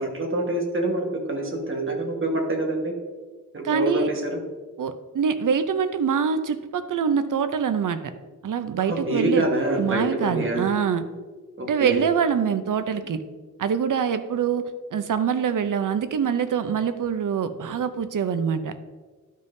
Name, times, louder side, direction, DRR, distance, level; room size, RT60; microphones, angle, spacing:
voice 1, 0.0-2.9 3.5-4.4 8.9-10.7 11.6-12.0, right 1 dB, 40° right, 0 dB, 1.4 m, -26 dB
voice 2, 3.6-4.1 4.8-8.0 8.4-9.5 9.7-11.0 11.6-13.2 13.6-18.7, right 7 dB, 70° right, 10 dB, 0.6 m, -24 dB
12.0 x 5.5 x 2.7 m, 1.4 s
wide cardioid pair, 120°, 32 cm